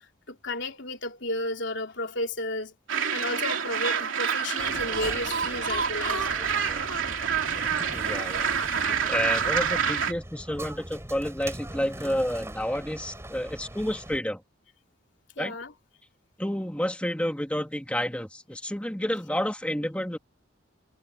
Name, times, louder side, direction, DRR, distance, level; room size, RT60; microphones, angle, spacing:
voice 1, 0.3-2.7 3.1-6.3 15.4-15.7, left 2 dB, 70° left, 3.0 m, -33 dB
sound 1, 2.9-10.1, right 6 dB, 90° right, 3.1 m, -27 dB
sound 2, 4.6-14.2, right 1 dB, 15° right, 3.1 m, -41 dB
voice 2, 7.9-8.5 9.1-14.4 15.4-15.5 16.4-20.2, equal, 5° left, 1.6 m, -30 dB
head